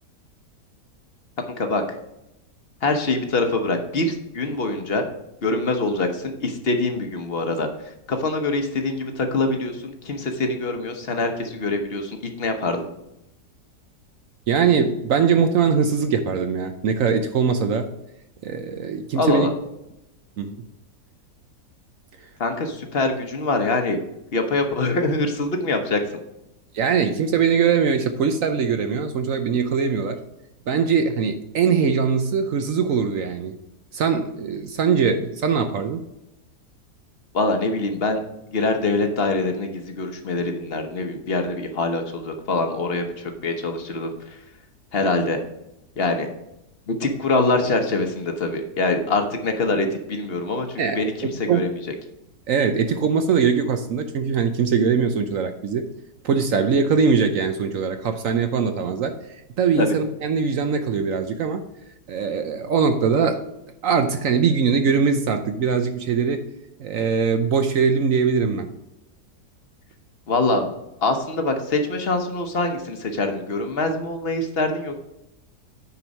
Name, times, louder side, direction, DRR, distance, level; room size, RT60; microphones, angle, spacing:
voice 1, 1.4-2.0 2.8-5.1 5.4-12.9 19.1-19.5 22.4-24.0 24.3-26.0 37.3-38.2 38.5-44.4 44.9-45.4 46.0-46.3 46.9-51.9 59.8-60.0 70.3-70.7 71.0-75.0, left 2 dB, 45° left, 5 dB, 1.0 m, -24 dB
voice 2, 14.5-17.9 18.4-19.5 20.4-20.6 26.7-30.2 30.7-33.5 33.9-36.0 50.8-51.1 51.5-51.7 52.5-55.9 56.2-59.1 59.6-61.6 62.1-63.4 63.8-66.4 66.8-68.7, right 6 dB, 65° right, 7 dB, 0.9 m, -21 dB
9.8 x 4.5 x 5.3 m, 0.89 s
omnidirectional pair, 1.8 m